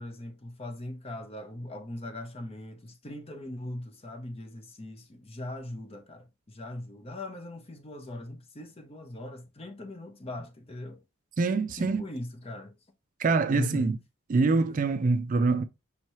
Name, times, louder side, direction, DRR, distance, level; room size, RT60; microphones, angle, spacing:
voice 1, 0.0-11.0 11.8-12.7 13.5-13.9, left 1 dB, 25° left, 0.7 m, -40 dB
voice 2, 11.4-12.1 13.2-14.0 14.3-15.6, right 3 dB, 35° right, 0.3 m, -25 dB
5.5 x 2.9 x 3.0 m
head